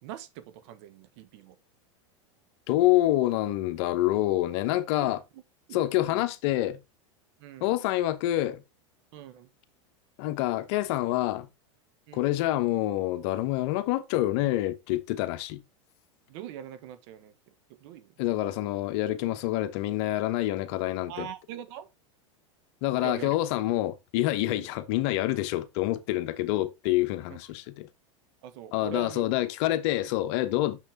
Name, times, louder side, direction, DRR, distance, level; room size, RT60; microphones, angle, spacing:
voice 1, 0.0-1.6 5.0-5.4 5.7-6.2 7.4-7.7 9.1-9.5 12.1-12.3 16.3-17.5 17.8-18.1 18.4-18.5 21.1-21.9 23.0-23.3 24.5-24.7 28.4-29.2 30.0-30.1, right 10 dB, 60° right, 1.3 m, -43 dB
voice 2, 2.7-5.2 5.7-6.8 7.6-8.6 10.2-11.5 12.1-15.6 18.2-21.3 22.8-27.9 28.7-30.8, left 15 dB, 60° left, 1.0 m, -27 dB
6.7 x 6.3 x 3.5 m
hypercardioid pair, 115°, 16 cm